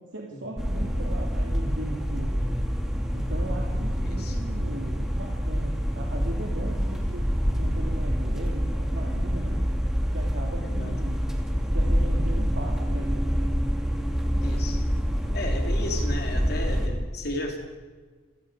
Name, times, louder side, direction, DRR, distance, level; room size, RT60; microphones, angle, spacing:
voice 1, 0.0-2.5 3.1-9.6 10.1-11.2 11.7-13.6, right 1 dB, 70° right, -2 dB, 2.9 m, -38 dB
sound 1, 0.6-16.9, equal, 5° right, 2.5 m, -26 dB
voice 2, 4.0-4.4 10.6-11.0 14.4-14.8 15.3-17.6, left 1 dB, 50° left, 2 dB, 3.4 m, -34 dB
29.0 x 17.5 x 5.0 m, 1.4 s
head